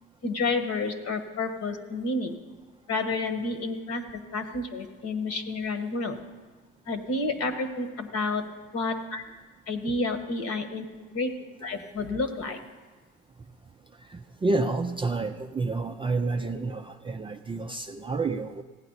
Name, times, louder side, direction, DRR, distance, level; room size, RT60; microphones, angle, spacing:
voice 1, 0.2-2.3 2.9-6.2 6.9-8.4 8.7-9.2 9.7-10.8 11.1-11.3 11.6-12.6, left 3 dB, 45° left, 6 dB, 1.4 m, -30 dB
voice 2, 14.1-18.6, right 3 dB, 15° right, 4 dB, 0.4 m, -29 dB
17.0 x 9.2 x 4.0 m, 1.3 s
supercardioid pair, 95°, 33 cm